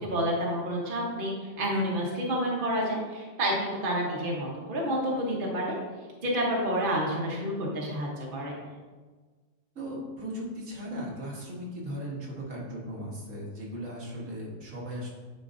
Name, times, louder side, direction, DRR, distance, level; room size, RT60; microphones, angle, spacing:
voice 1, 0.0-5.7 6.2-8.6, equal, 45° right, -2 dB, 1.3 m, -29 dB
voice 2, 9.8-15.1, equal, 85° right, -4 dB, 1.8 m, -37 dB
10.0 x 4.5 x 2.7 m, 1.4 s
omnidirectional pair, 1.3 m